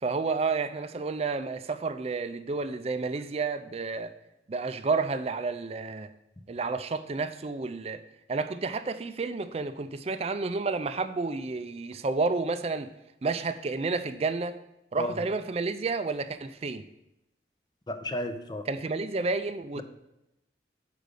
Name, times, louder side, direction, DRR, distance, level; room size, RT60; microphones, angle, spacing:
voice 1, 0.0-4.1 4.5-6.1 6.5-8.0 8.3-12.9 13.2-14.6 14.9-16.8 18.7-19.8, right 4 dB, 35° right, 11 dB, 0.4 m, -30 dB
voice 2, 17.9-18.6, left 1 dB, 25° left, 8 dB, 0.6 m, -32 dB
6.6 x 5.0 x 6.6 m, 0.89 s
head